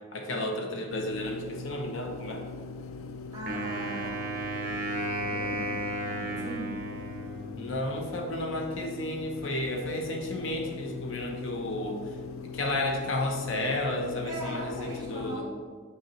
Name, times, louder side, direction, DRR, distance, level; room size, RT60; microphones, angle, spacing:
voice 1, 0.1-2.5 7.6-12.1 12.5-15.5, left 1 dB, 70° left, 3 dB, 0.8 m, -32 dB
sound 1, 0.9-15.4, left 4 dB, 90° left, 0.4 m, -41 dB
voice 2, 3.3-4.1 5.1-5.8 6.1-6.8 14.2-15.5, right 1 dB, 20° right, -6 dB, 1.6 m, -39 dB
Wind instrument woodwind instrument, 3.5-7.7, right 1 dB, 45° right, 0.8 m, -34 dB
6.7 x 5.6 x 3.0 m, 1.5 s
head